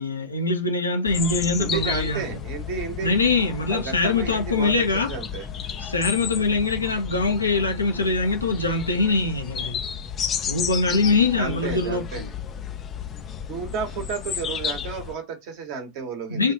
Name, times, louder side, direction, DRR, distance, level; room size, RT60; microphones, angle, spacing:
voice 1, 0.0-2.3 3.0-5.1 5.8-9.8 10.5-12.3 16.3-16.5, left 3 dB, 80° left, 0.7 m, -23 dB
sound 1, 1.1-15.1, left 8 dB, 25° left, 0.4 m, -32 dB
voice 2, 1.6-3.1 3.7-5.5 6.3-6.4 11.4-12.3 13.5-16.5, right 6 dB, 45° right, 1.1 m, -32 dB
3.4 x 2.4 x 2.8 m
figure-of-eight pair, 90°, 0 cm